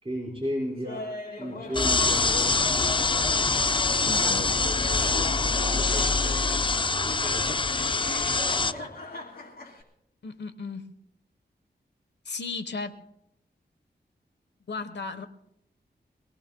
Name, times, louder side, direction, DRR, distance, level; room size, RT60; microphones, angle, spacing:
voice 1, 0.0-1.1 1.4-3.0 4.0-7.6 8.5-8.9, equal, 30° right, -5 dB, 4.9 m, -36 dB
Laughter, 0.8-6.8 7.2-9.8, left 1 dB, 55° left, 2.8 m, -40 dB
sound 1, 1.7-8.7, left 4 dB, 25° left, 0.4 m, -24 dB
voice 2, 4.1-4.5 10.2-10.9 12.2-13.0 14.7-15.3, left 4 dB, 70° left, 8 dB, 1.1 m, -35 dB
23.5 x 18.0 x 2.2 m, 0.79 s
wide cardioid pair, 65°, 18 cm